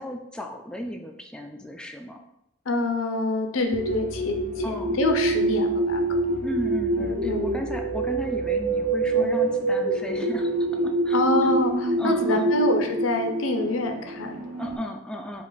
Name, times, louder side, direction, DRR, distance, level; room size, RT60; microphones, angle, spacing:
voice 1, 0.0-2.2 4.6-5.0 6.4-11.5 12.0-12.5 14.6-15.4, equal, 5° left, 2 dB, 0.3 m, -35 dB
voice 2, 2.7-6.3 7.0-7.6 9.2-9.3 11.1-14.4, left 2 dB, 85° left, 5 dB, 0.6 m, -26 dB
sound 1, 3.7-14.8, right 2 dB, 40° right, 0.6 m, -26 dB
5.0 x 2.5 x 3.9 m, 0.83 s
head